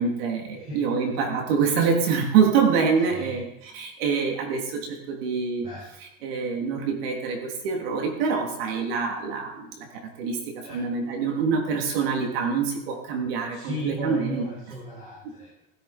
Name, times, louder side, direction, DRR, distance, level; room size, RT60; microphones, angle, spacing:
voice 1, 0.0-5.7 6.2-14.4, right 5 dB, 70° right, 2 dB, 3.3 m, -25 dB
voice 2, 0.5-1.1 3.1-3.4 5.6-5.8 10.6-10.8 13.5-15.6, left 1 dB, 20° right, -5 dB, 6.2 m, -36 dB
16.5 x 15.0 x 4.5 m, 0.81 s
supercardioid pair, 175°, 31 cm